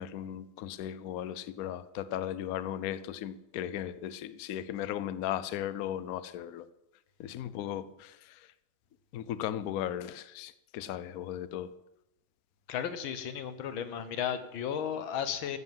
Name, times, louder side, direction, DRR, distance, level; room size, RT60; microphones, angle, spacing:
voice 1, 0.0-6.7 7.2-8.5 9.1-11.7, left 11 dB, 90° left, 0.8 m, -36 dB
voice 2, 12.7-15.6, left 8 dB, 70° left, 1.8 m, -34 dB
14.5 x 7.8 x 7.3 m
omnidirectional pair, 2.3 m